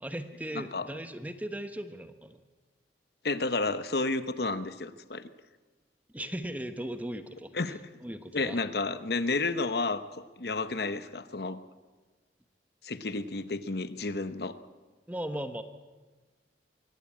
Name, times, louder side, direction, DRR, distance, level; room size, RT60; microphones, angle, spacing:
voice 1, 0.0-2.4 6.1-7.5 8.0-8.6 15.1-15.6, right 1 dB, 10° right, 8 dB, 1.1 m, -37 dB
voice 2, 0.5-0.9 3.2-5.3 7.5-7.8 8.3-11.6 12.8-14.6, left 3 dB, 60° left, 11 dB, 1.0 m, -31 dB
23.5 x 16.5 x 8.6 m, 1.3 s
head